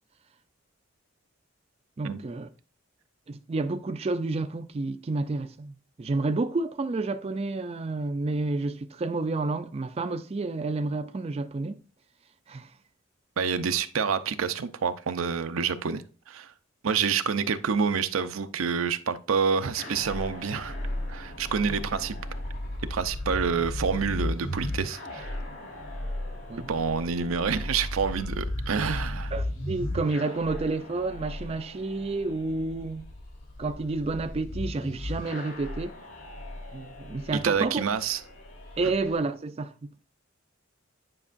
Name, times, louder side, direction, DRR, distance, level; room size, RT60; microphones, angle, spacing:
voice 1, 2.0-2.5 3.3-11.8 12.5-12.7 26.5-26.7 29.3-33.0 33.6-35.9 36.7-37.8 38.8-40.0, right 3 dB, 30° right, 0.4 m, -30 dB
voice 2, 13.4-16.5 16.8-20.8 21.1-22.2 22.9-25.4 26.7-29.3 37.3-38.2, right 6 dB, 85° right, 0.6 m, -28 dB
sound 1, 19.7-39.2, left 1 dB, 65° left, 3.5 m, -36 dB
9.7 x 5.3 x 2.5 m
head